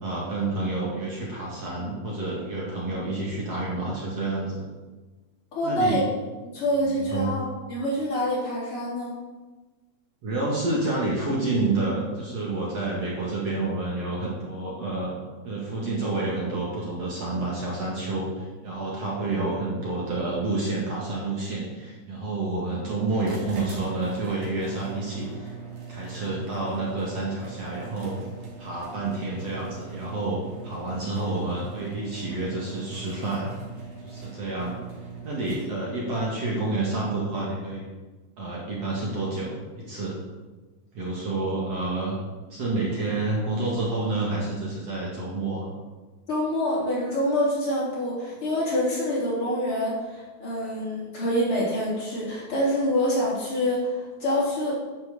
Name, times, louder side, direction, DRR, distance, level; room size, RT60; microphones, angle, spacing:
voice 1, 0.0-4.7 5.6-6.0 6.8-7.3 10.2-15.1 15.4-25.5 25.9-28.2 28.6-33.5 34.0-34.7 35.2-37.9 38.4-40.2 40.9-42.2 42.5-45.7, right 2 dB, 50° right, -4 dB, 2.8 m, -29 dB
voice 2, 5.5-6.0 6.4-9.1 46.3-54.7, equal, 40° left, -7 dB, 4.0 m, -26 dB
sound 1, 23.2-36.0, right 4 dB, 85° right, 4.1 m, -41 dB
10.5 x 6.1 x 6.8 m, 1.2 s
omnidirectional pair, 4.1 m